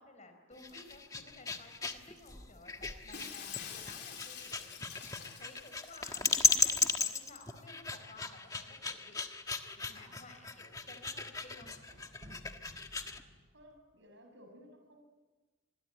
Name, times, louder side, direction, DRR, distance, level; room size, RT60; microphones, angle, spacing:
voice 1, 0.0-4.7 5.1-9.2 9.7-11.7, left 2 dB, 35° left, 6 dB, 4.7 m, -55 dB
sound 1, 0.5-13.2, left 3 dB, 15° left, 1.4 m, -35 dB
Shatter, 3.1-6.6, left 7 dB, 55° left, 3.9 m, -47 dB
sound 2, 8.0-13.9, equal, 40° right, 7.6 m, -58 dB
voice 2, 13.5-15.0, equal, 65° right, 5 dB, 7.0 m, -57 dB
26.5 x 22.0 x 9.2 m, 1.2 s
head